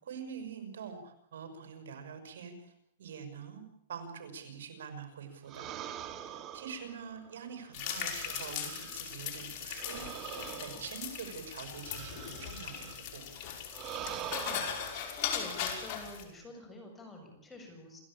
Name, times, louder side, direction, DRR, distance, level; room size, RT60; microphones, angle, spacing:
voice 1, 0.0-2.7 3.0-3.6 3.9-5.7 6.3-13.3, right 6 dB, 75° right, 7 dB, 6.0 m, -45 dB
sound 1, 5.5-9.1 9.8-13.1 13.7-15.1, right 10 dB, 30° right, 2.2 m, -44 dB
sound 2, 7.7-16.2, left 8 dB, 40° left, 5.4 m, -39 dB
voice 2, 14.3-18.0, left 1 dB, 10° left, 2 dB, 7.2 m, -48 dB
28.5 x 15.5 x 8.8 m, 0.71 s
hypercardioid pair, 145°, 0 cm